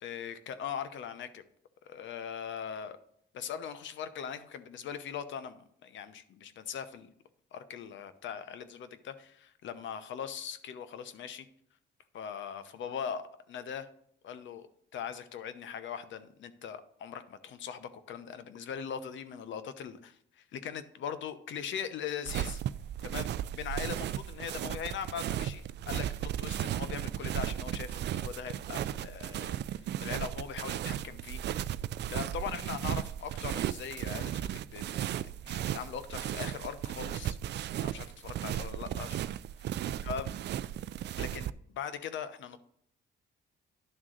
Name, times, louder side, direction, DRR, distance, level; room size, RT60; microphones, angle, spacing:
voice 1, 0.0-1.4 1.8-3.0 3.3-7.1 7.5-11.5 12.1-13.9 14.2-14.7 14.9-22.6 23.0-31.4 32.1-37.4 37.8-39.2 40.0-40.3 41.2-42.6, left 8 dB, 70° left, 12 dB, 0.8 m, -40 dB
sound 1, 22.3-41.5, right 11 dB, 60° right, 0.4 m, -35 dB
11.0 x 3.7 x 6.4 m, 0.71 s
cardioid pair, 90°, 20 cm